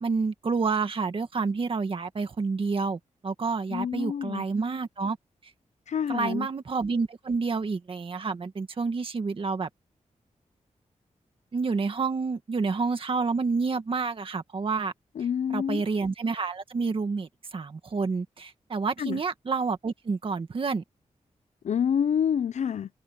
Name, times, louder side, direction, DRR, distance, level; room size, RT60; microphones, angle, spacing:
voice 1, 0.0-5.2 6.1-9.7 11.5-14.9 15.5-20.8, right 4 dB, 45° right, 1.9 m, -29 dB
voice 2, 3.7-4.4 5.9-6.5 15.2-15.8 19.0-19.2 21.6-22.9, left 8 dB, 65° left, 0.5 m, -27 dB
wide cardioid pair, 145°, 13 cm